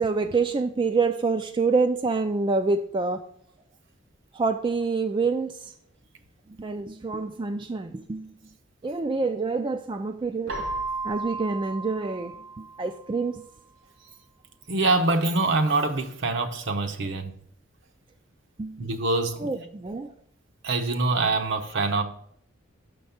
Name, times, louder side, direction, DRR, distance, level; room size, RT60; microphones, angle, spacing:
voice 1, 0.0-3.2 4.3-5.7 6.6-8.3 8.8-10.5 11.0-13.4 18.6-18.8 19.4-20.1, right 4 dB, 25° right, 0.3 m, -27 dB
Keyboard (musical), 10.5-13.2, right 3 dB, 90° right, 2.5 m, -34 dB
voice 2, 14.7-17.4 18.8-19.6 20.6-22.0, right 3 dB, 65° right, 0.8 m, -25 dB
6.3 x 5.3 x 5.7 m
head